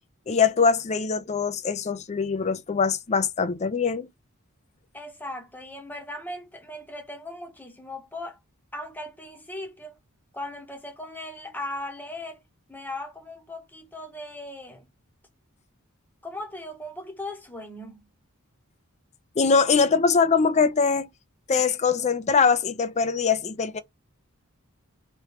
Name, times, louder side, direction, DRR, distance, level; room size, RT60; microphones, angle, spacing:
voice 1, 0.3-4.1 19.4-21.1 21.5-23.8, left 5 dB, 35° left, 0.5 m, -22 dB
voice 2, 4.9-8.4 8.7-10.0 10.3-12.4 12.7-14.9 16.2-18.1, left 1 dB, 10° left, 0.9 m, -38 dB
3.2 x 3.0 x 2.9 m
head